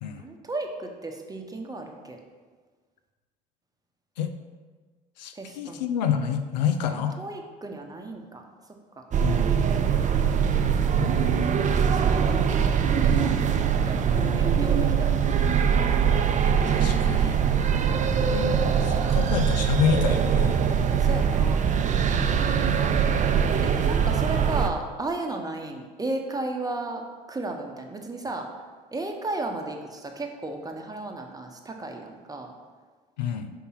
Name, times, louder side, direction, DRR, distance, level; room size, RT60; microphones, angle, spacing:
voice 1, 0.2-2.2 5.3-5.9 6.9-9.1 10.0-10.1 10.8-11.5 11.8-13.4 13.8-14.0 14.3-15.7 21.0-21.6 23.6-27.0 27.3-28.5 28.9-32.5, right 2 dB, 15° right, 3 dB, 1.0 m, -35 dB
voice 2, 5.2-7.1 9.2-9.5 11.0-11.4 14.2-14.5 16.7-17.4 18.3-20.6 22.2-23.2 33.2-33.5, left 8 dB, 90° left, 8 dB, 0.5 m, -29 dB
sound 1, 9.1-24.7, right 7 dB, 35° right, 0.6 m, -22 dB
5.4 x 3.7 x 5.7 m, 1.4 s
hypercardioid pair, 65°, 21 cm